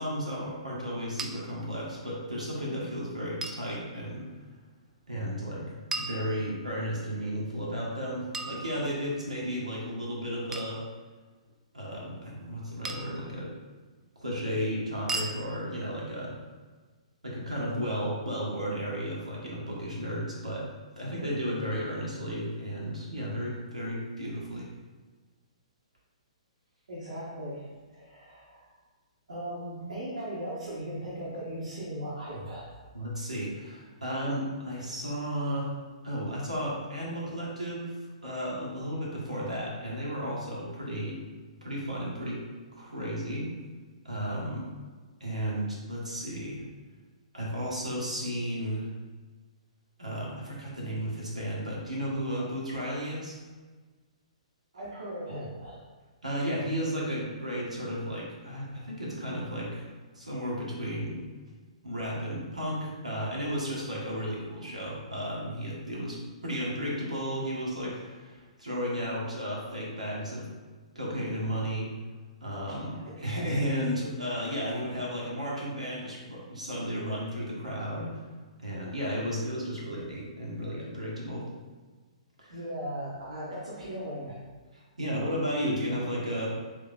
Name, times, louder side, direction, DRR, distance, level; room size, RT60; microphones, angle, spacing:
voice 1, 0.0-4.4 5.1-10.8 11.7-13.5 14.1-16.3 17.2-20.6 21.0-24.7 32.9-35.8 36.0-37.9 38.2-41.2 41.6-42.4 42.7-43.5 44.0-44.7 45.2-46.6 47.3-48.9 50.0-53.4 56.2-59.9 60.1-61.2 61.8-66.2 66.4-70.5 70.9-71.9 72.4-78.2 78.6-81.5 82.4-82.6 84.7-86.5, equal, 90° right, -5 dB, 1.3 m, -33 dB
sound 1, 1.2-1.3 3.4-3.7 5.9-6.8 8.3-9.2 10.5-10.8 12.8-13.3 15.1-15.4, right 3 dB, 10° right, 0.3 m, -36 dB
voice 2, 26.9-28.7 29.3-32.7 54.7-55.8 72.7-73.4 82.5-84.4, right 1 dB, 75° right, -7 dB, 1.1 m, -38 dB
3.6 x 3.3 x 3.4 m, 1.4 s
figure-of-eight pair, 120°, 4 cm